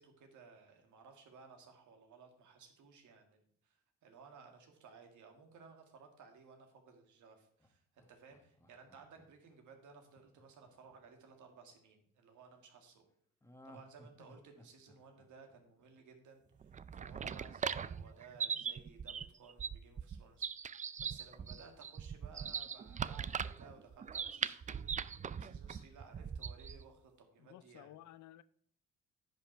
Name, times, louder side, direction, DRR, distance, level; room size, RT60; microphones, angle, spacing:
voice 1, 0.0-13.0 13.6-28.0, right 5 dB, 75° right, 2.0 m, -58 dB
Laughter, 7.6-11.8 13.4-16.4 16.7-16.8, equal, 10° left, 1.3 m, -61 dB
Parque da Cidade - Pássaro, 16.6-26.8, right 7 dB, 25° right, 0.4 m, -40 dB
voice 2, 27.4-28.4, left 13 dB, 75° left, 0.6 m, -55 dB
10.0 x 5.7 x 4.5 m
cardioid pair, 90°, 30 cm